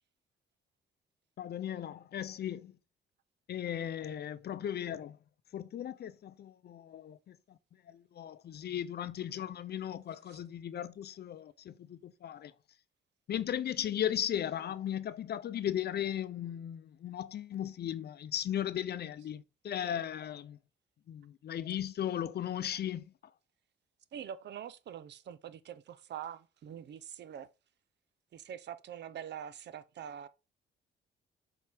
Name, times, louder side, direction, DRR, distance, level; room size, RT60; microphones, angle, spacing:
voice 1, 1.4-2.7 3.5-5.2 5.5-7.6 7.9-12.5 13.3-20.6 21.1-23.1, left 10 dB, 55° left, 0.6 m, -37 dB
voice 2, 24.1-27.5 28.3-30.3, right 9 dB, 60° right, 0.7 m, -44 dB
7.4 x 4.5 x 3.5 m
cardioid pair, 90°, 20 cm